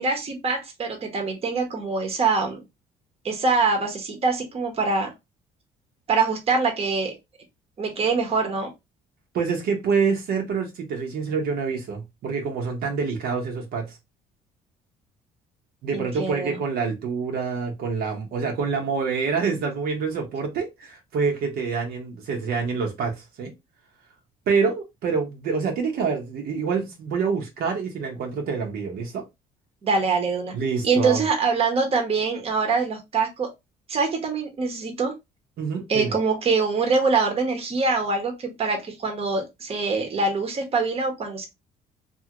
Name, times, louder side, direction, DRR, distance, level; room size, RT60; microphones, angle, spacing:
voice 1, 0.0-2.6 3.2-5.1 6.1-7.2 7.8-8.7 15.9-16.6 29.8-30.5 30.8-33.5 33.9-35.1 35.9-41.5, right 4 dB, 35° right, 1.0 m, -24 dB
voice 2, 9.3-14.0 15.8-23.5 24.5-29.2 30.5-31.2 35.6-36.2, right 5 dB, 65° right, 0.9 m, -26 dB
2.7 x 2.5 x 2.9 m
cardioid pair, 110°, 17 cm